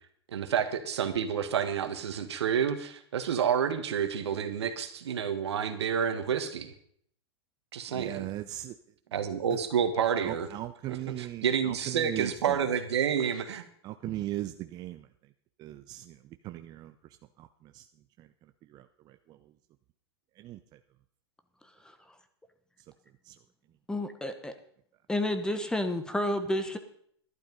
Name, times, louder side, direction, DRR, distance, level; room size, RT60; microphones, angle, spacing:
voice 1, 0.3-6.7 7.7-8.3 9.1-10.5 10.9-13.6, right 8 dB, 80° right, 8 dB, 1.7 m, -29 dB
voice 2, 7.9-8.7 10.2-12.5 13.8-15.1 15.6-16.2 16.4-16.9 17.4-17.5 17.7-17.8 18.2-18.3 18.7-18.8 19.3-19.4 20.4-20.6 23.3-23.4, right 15 dB, 30° right, 9 dB, 0.6 m, -38 dB
voice 3, 23.9-24.5 25.1-26.8, left 1 dB, 5° left, 9 dB, 1.0 m, -30 dB
12.0 x 11.0 x 5.3 m, 0.64 s
hypercardioid pair, 130°, 14 cm